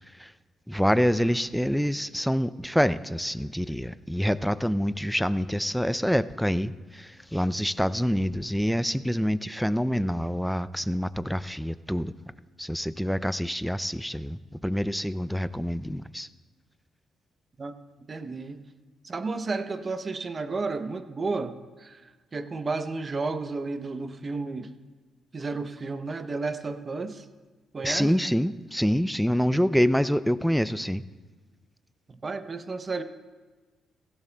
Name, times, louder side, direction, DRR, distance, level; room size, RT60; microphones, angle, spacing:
voice 1, 0.7-12.1 12.6-16.3 27.8-31.0, equal, ahead, 0.4 m, -26 dB
voice 2, 18.1-18.6 19.0-24.7 25.3-27.3 27.7-28.2 32.1-33.0, right 3 dB, 35° right, 0.7 m, -32 dB
16.5 x 16.0 x 2.2 m
cardioid pair, 90°, 0 cm